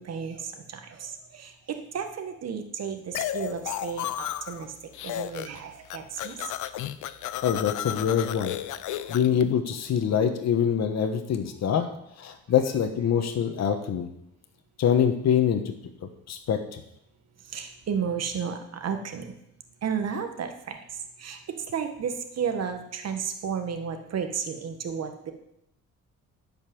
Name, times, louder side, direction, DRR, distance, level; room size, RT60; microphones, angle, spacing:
voice 1, 0.0-4.7 5.0-6.5 8.9-9.1 17.5-19.3 19.8-20.8 21.2-21.4 21.7-25.3, right 7 dB, 55° right, 6 dB, 1.5 m, -33 dB
sound 1, 3.1-4.6 4.9-5.6 5.8-9.4, left 12 dB, 75° left, 0.7 m, -33 dB
voice 2, 7.4-8.6 9.1-11.9 12.2-14.1 14.8-15.7 16.0-16.8, left 8 dB, 60° left, 6 dB, 1.3 m, -25 dB
10.5 x 5.4 x 7.7 m, 0.80 s
cardioid pair, 90°, 30 cm